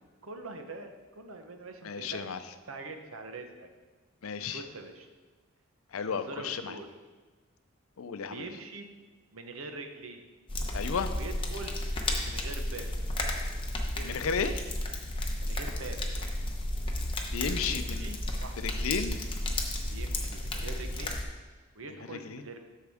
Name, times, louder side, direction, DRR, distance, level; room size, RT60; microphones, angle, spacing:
voice 1, 0.2-2.3 2.7-3.7 4.5-5.1 6.1-6.9 8.3-8.9 9.3-10.3 11.1-11.8 12.2-12.9 13.9-14.3 15.4-16.0 17.5-18.7 19.9-21.2 21.7-22.6, right 3 dB, 75° right, 5 dB, 0.9 m, -43 dB
voice 2, 1.8-2.4 4.2-4.6 5.9-6.7 8.0-8.5 10.7-11.1 14.0-14.6 17.3-18.1 18.6-19.2 22.1-22.4, left 6 dB, 85° left, 10 dB, 0.5 m, -33 dB
sound 1, 10.5-21.2, left 1 dB, 25° left, 0.9 m, -33 dB
13.0 x 4.6 x 3.5 m, 1.3 s
head